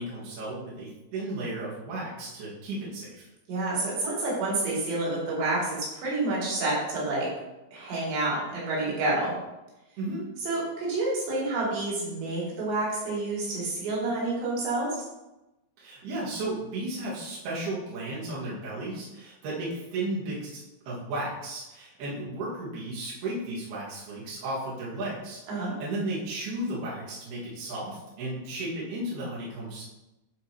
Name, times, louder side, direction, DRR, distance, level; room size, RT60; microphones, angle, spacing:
voice 1, 0.0-3.3 10.0-10.3 15.8-20.6 20.9-29.8, right 1 dB, 65° right, -8 dB, 3.8 m, -34 dB
voice 2, 3.5-7.3 7.7-9.3 10.5-14.9 25.5-25.7, right 2 dB, 90° right, -6 dB, 5.0 m, -29 dB
11.5 x 5.1 x 3.0 m, 0.98 s
omnidirectional pair, 4.9 m